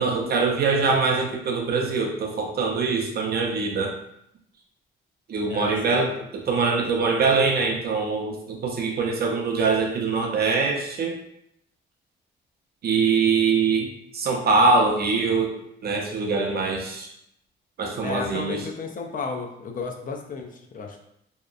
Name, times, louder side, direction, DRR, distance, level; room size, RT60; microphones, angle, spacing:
voice 1, 0.0-3.9 5.3-11.2 12.8-15.6 15.8-17.1 17.8-18.7, right 4 dB, 50° right, 1 dB, 0.5 m, -23 dB
voice 2, 5.5-6.3 18.0-21.0, left 4 dB, 45° left, 3 dB, 0.5 m, -33 dB
2.8 x 2.1 x 2.4 m, 0.75 s
cardioid pair, 90°, 20 cm